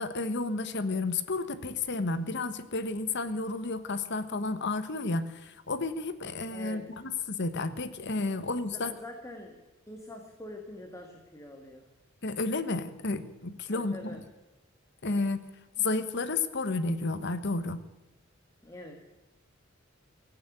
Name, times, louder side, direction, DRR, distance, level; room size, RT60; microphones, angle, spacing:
voice 1, 0.0-8.9 12.2-14.2 15.0-15.4 15.8-17.8, left 3 dB, 60° left, 11 dB, 1.3 m, -31 dB
voice 2, 6.5-6.9 8.7-11.9 13.7-14.2 18.6-19.1, left 1 dB, 15° left, 2 dB, 1.8 m, -45 dB
16.5 x 9.2 x 9.6 m, 1.1 s
head